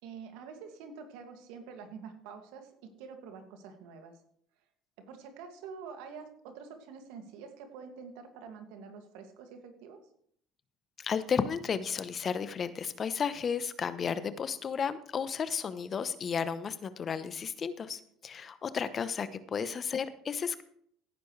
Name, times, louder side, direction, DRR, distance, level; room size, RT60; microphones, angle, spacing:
voice 1, 0.0-2.7 3.0-4.2 5.1-10.0 19.6-19.7, right 6 dB, 75° right, 5 dB, 2.3 m, -47 dB
voice 2, 11.0-20.6, left 6 dB, 40° left, 13 dB, 1.0 m, -33 dB
16.0 x 9.9 x 3.3 m, 0.65 s
hypercardioid pair, 70°, 0 cm